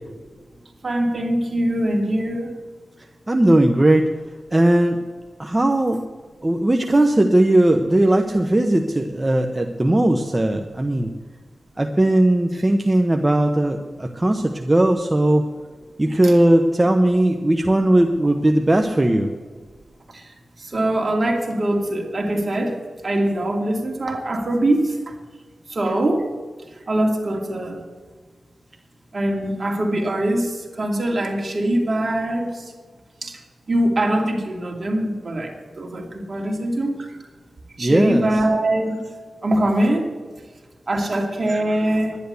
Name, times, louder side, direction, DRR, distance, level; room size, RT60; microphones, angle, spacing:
voice 1, 0.8-2.5 16.2-16.3 20.1-20.3 20.6-25.1 25.7-26.3 26.9-27.8 29.1-32.7 33.2-33.4 33.7-37.1 37.8-39.0 39.4-40.1 40.9-42.2, right 1 dB, 45° right, 1 dB, 2.7 m, -22 dB
voice 2, 3.3-4.1 4.5-5.0 5.4-6.0 6.4-11.1 11.8-15.5 16.0-19.3 37.8-38.3, right 1 dB, 20° right, 4 dB, 0.9 m, -18 dB
11.0 x 10.5 x 6.9 m, 1.4 s
wide cardioid pair, 85°, 0 cm